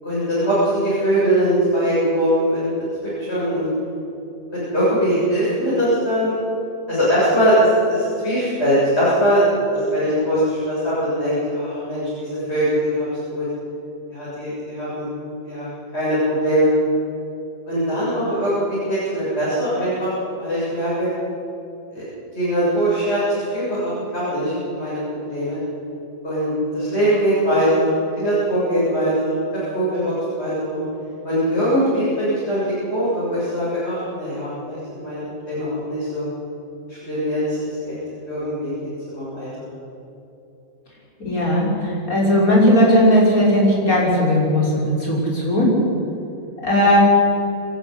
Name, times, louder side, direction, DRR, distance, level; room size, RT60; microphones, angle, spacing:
voice 1, 0.0-2.7 3.3-3.7 4.5-6.3 6.9-9.4 9.7-13.4 14.1-15.1 15.5-15.7 15.9-16.7 17.7-20.1 20.4-21.1 21.9-22.0 22.3-25.6 26.2-30.1 30.4-30.8 31.2-32.6 32.9-34.8 35.0-36.3 36.9-37.6 37.8-37.9 38.3-39.5, equal, 50° left, -10 dB, 8.1 m, -21 dB
voice 2, 41.2-45.7 46.6-47.0, equal, 85° left, -4 dB, 6.5 m, -17 dB
27.0 x 12.5 x 10.0 m, 2.8 s
omnidirectional pair, 1.5 m